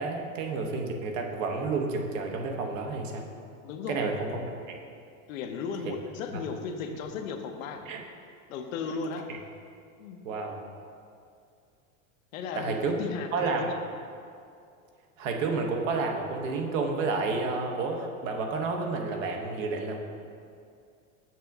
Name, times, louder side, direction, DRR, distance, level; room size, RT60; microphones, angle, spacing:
voice 1, 0.0-3.2 3.9-4.8 5.8-5.9 6.3-6.4 7.8-8.0 9.3-9.4 10.2-10.6 12.5-13.0 13.3-13.7 15.2-20.0, right 4 dB, 65° right, 3 dB, 1.0 m, -30 dB
voice 2, 3.6-4.0 5.3-7.8 8.5-9.3 10.0-10.2 12.3-13.7, left 5 dB, 70° left, 5 dB, 0.8 m, -35 dB
7.4 x 6.0 x 3.5 m, 2.4 s
supercardioid pair, 170°, 42 cm